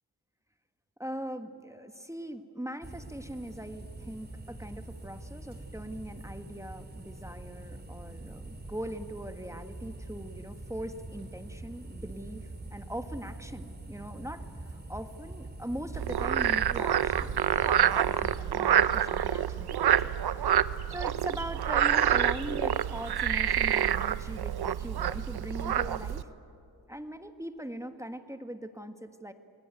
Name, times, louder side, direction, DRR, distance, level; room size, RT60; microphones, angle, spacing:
voice 1, 1.0-20.4 20.9-26.3 26.9-29.3, right 1 dB, 10° right, 7 dB, 1.6 m, -41 dB
sound 1, 2.8-18.4, right 2 dB, 25° right, 3.0 m, -44 dB
Frog, 15.9-26.2, right 10 dB, 75° right, 0.8 m, -27 dB
28.5 x 21.0 x 9.3 m, 2.6 s
cardioid pair, 60°, 39 cm